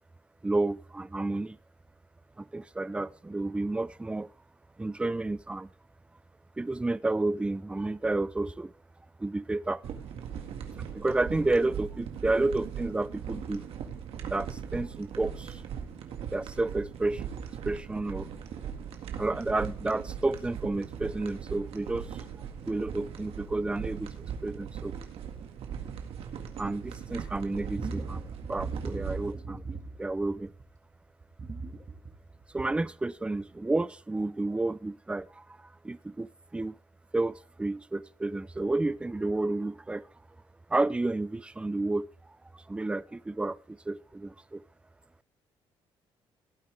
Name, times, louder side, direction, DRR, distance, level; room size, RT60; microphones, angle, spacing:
voice 1, 0.4-1.6 2.4-4.3 4.8-5.7 6.6-8.7 9.2-9.8 10.9-13.7 14.3-15.6 16.3-17.2 17.6-18.3 19.2-22.3 22.7-24.1 24.4-24.9 26.6-29.6 30.0-30.5 32.5-36.8 37.1-40.1 40.7-42.1 42.5-44.6, right 2 dB, 10° right, 0.5 m, -31 dB
sound 1, 9.8-29.3, right 8 dB, 75° right, 1.9 m, -39 dB
sound 2, 27.7-30.8 31.2-32.9 33.4-33.5, right 3 dB, 30° right, 1.8 m, -39 dB
17.0 x 8.8 x 3.4 m
cardioid pair, 105°, 10 cm